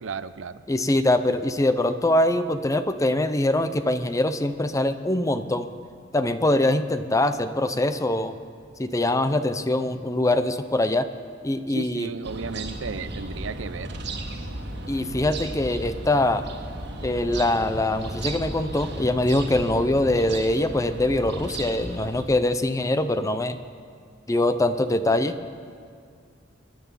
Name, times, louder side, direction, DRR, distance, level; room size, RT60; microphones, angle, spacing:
voice 1, 0.0-0.6 11.7-13.9, right 5 dB, 75° right, 14 dB, 0.6 m, -34 dB
voice 2, 0.7-5.7 6.1-8.4 8.8-11.1 11.4-12.1 14.9-16.5 17.0-23.6 24.3-25.4, left 1 dB, 15° left, 11 dB, 0.6 m, -23 dB
sound 1, 12.2-22.2, right 1 dB, 60° right, 1.6 m, -35 dB
23.5 x 10.5 x 5.6 m, 2.1 s
head